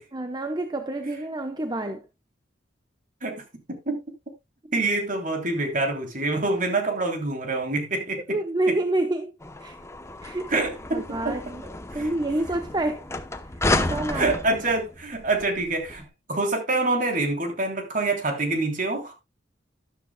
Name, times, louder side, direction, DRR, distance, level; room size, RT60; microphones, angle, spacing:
voice 1, 0.1-2.0 8.3-9.3 9.6-9.8 10.2-10.5 10.9-11.6 11.9-13.1 13.5-14.3, right 2 dB, 20° right, 0.8 m, -28 dB
voice 2, 4.7-8.4 8.7-8.8 10.5-11.4 11.9-12.1 14.1-19.1, right 2 dB, 45° right, 3.1 m, -26 dB
sound 1, 9.4-16.0, left 2 dB, 15° left, 0.8 m, -31 dB
12.5 x 12.0 x 2.3 m
head